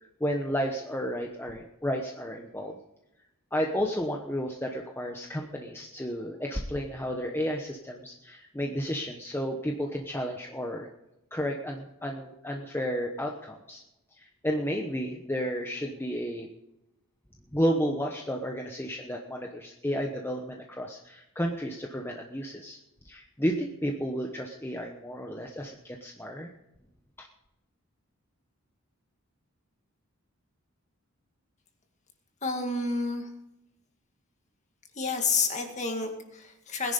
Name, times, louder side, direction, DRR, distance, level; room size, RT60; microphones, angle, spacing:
voice 1, 0.2-2.8 3.5-10.9 11.3-13.8 14.2-16.5 17.5-22.8 23.0-26.5 27.2-27.3, equal, 10° left, 1 dB, 1.0 m, -32 dB
voice 2, 32.4-33.3 34.9-36.9, left 4 dB, 30° left, 4 dB, 2.1 m, -29 dB
20.0 x 10.5 x 5.3 m, 0.90 s
head